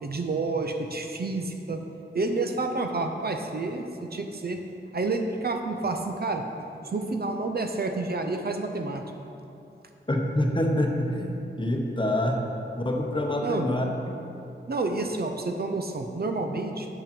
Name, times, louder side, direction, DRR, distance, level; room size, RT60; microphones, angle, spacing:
voice 1, 0.0-1.8 2.1-4.6 4.9-6.4 6.8-9.0 13.4-13.7 14.7-16.9, right 3 dB, 55° right, 4 dB, 0.6 m, -29 dB
voice 2, 10.1-11.3 11.6-12.5 12.8-13.9, left 1 dB, 25° left, 2 dB, 0.9 m, -26 dB
7.0 x 5.5 x 5.3 m, 2.7 s
wide cardioid pair, 55°, 19 cm